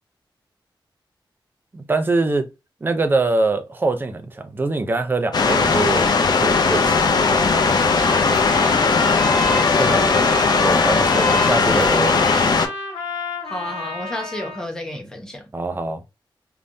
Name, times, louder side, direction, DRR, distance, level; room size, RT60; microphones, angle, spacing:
voice 1, 1.7-2.5 2.8-7.8 9.8-10.2 10.6-12.3 15.5-16.0, right 3 dB, 25° right, 0.5 m, -24 dB
sound 1, 5.3-12.7, left 4 dB, 55° left, 0.6 m, -18 dB
Trumpet, 6.8-14.7, left 3 dB, 70° left, 1.6 m, -28 dB
voice 2, 9.9-10.3 13.5-15.4, left 1 dB, 5° left, 0.8 m, -31 dB
3.3 x 2.0 x 2.6 m
wide cardioid pair, 165°, 9 cm